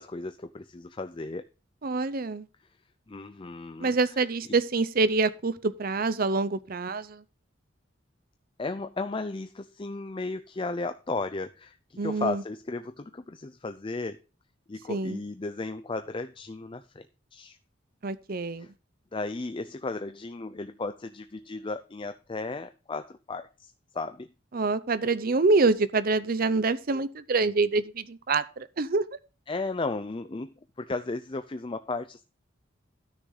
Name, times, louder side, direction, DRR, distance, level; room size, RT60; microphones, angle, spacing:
voice 1, 0.0-1.4 3.1-3.9 8.6-14.2 14.7-17.0 17.3-17.6 18.6-18.7 19.1-24.3 29.5-30.5 30.8-32.2, left 3 dB, 25° left, 0.5 m, -35 dB
voice 2, 1.8-2.5 3.8-7.2 12.0-12.4 14.9-15.2 18.0-18.7 24.5-29.0, right 3 dB, 50° right, 0.7 m, -26 dB
12.5 x 6.5 x 3.9 m
head